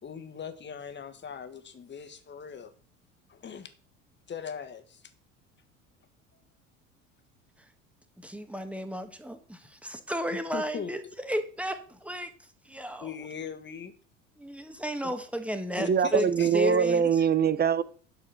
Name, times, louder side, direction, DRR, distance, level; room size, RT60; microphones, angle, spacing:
voice 1, 0.0-2.7 3.3-3.7 4.3-5.0 6.3-6.4 10.5-11.1 13.0-13.9 15.0-15.1 15.7-16.8 17.0-17.1, left 7 dB, 30° left, 1.7 m, -40 dB
voice 2, 8.2-12.3 12.6-13.1 14.4-16.3 16.5-17.0, equal, 5° right, 1.5 m, -33 dB
voice 3, 15.8-17.8, right 7 dB, 25° right, 0.7 m, -23 dB
12.0 x 4.8 x 5.9 m
figure-of-eight pair, 65°, 38 cm